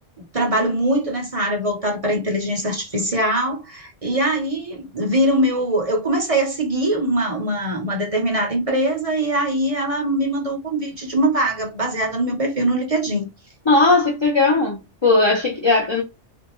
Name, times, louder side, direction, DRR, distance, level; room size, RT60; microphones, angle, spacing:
voice 1, 0.2-13.3, right 1 dB, 35° right, 0.8 m, -22 dB
voice 2, 13.7-16.0, left 3 dB, 30° left, 0.6 m, -17 dB
3.4 x 2.6 x 3.0 m
omnidirectional pair, 1.3 m